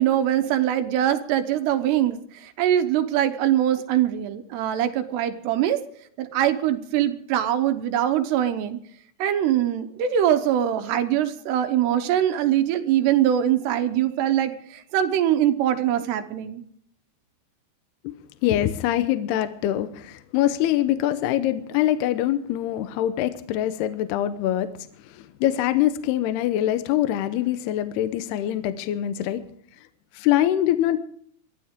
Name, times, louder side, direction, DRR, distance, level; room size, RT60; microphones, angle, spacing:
voice 1, 0.0-5.8 6.2-8.8 9.2-16.6, right 11 dB, 80° right, 9 dB, 3.0 m, -23 dB
voice 2, 18.4-24.7 25.1-29.4 30.2-31.0, left 12 dB, 75° left, 10 dB, 2.7 m, -24 dB
23.0 x 15.0 x 3.6 m, 0.62 s
omnidirectional pair, 5.0 m